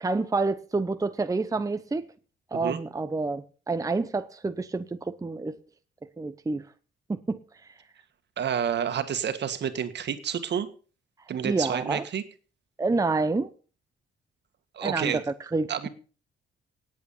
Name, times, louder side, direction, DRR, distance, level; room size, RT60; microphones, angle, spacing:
voice 1, 0.0-2.1 2.5-5.6 6.2-6.7 7.1-7.4 11.4-12.1 12.8-13.5 14.8-15.2 15.5-15.7, right 3 dB, 15° right, 0.8 m, -28 dB
voice 2, 8.4-10.7 11.3-12.2 14.7-15.2 15.7-15.9, right 8 dB, 60° right, 1.9 m, -29 dB
18.0 x 8.6 x 5.6 m
cardioid pair, 90°, 20 cm